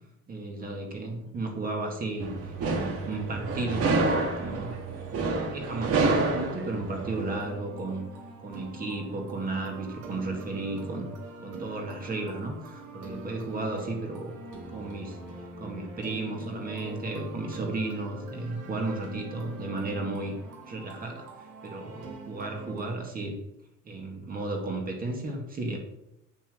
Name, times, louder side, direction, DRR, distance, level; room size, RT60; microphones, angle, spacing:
voice 1, 0.3-4.8 5.5-8.1 8.4-11.1 11.4-14.3 14.7-15.2 15.6-20.4 20.7-21.3 21.6-23.4 23.8-25.8, right 2 dB, 30° right, 2 dB, 2.0 m, -34 dB
sound 1, 2.2-7.4, right 3 dB, 50° right, 2.3 m, -28 dB
sound 2, 7.1-23.0, right 2 dB, 80° right, 2.8 m, -43 dB
8.7 x 8.1 x 6.6 m, 0.86 s
cardioid pair, 160°, 30 cm